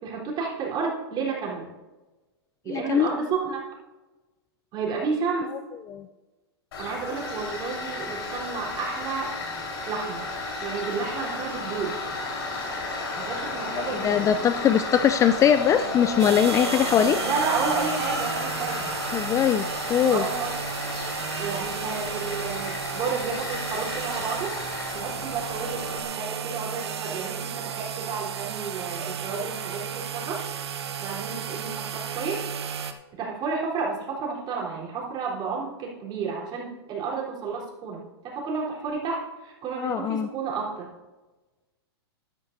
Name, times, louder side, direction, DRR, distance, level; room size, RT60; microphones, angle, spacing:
voice 1, 0.0-1.7 2.6-3.6 4.7-5.6 6.8-9.3 9.9-10.2 10.6-12.0 13.2-14.3 17.2-18.9 20.1-20.5 21.4-24.5 24.9-30.4 31.0-32.5 33.2-40.9, right 5 dB, 35° right, -3 dB, 3.8 m, -31 dB
voice 2, 2.7-3.1 5.9-6.1 13.8-17.2 19.1-19.6 19.9-20.2 39.8-40.3, left 9 dB, 25° left, 11 dB, 0.4 m, -21 dB
Tools, 6.7-26.0, left 3 dB, 70° left, 4.1 m, -33 dB
sound 1, 16.2-32.9, right 8 dB, 80° right, 1.0 m, -33 dB
13.0 x 12.0 x 2.7 m, 1.2 s
hypercardioid pair, 115°, 14 cm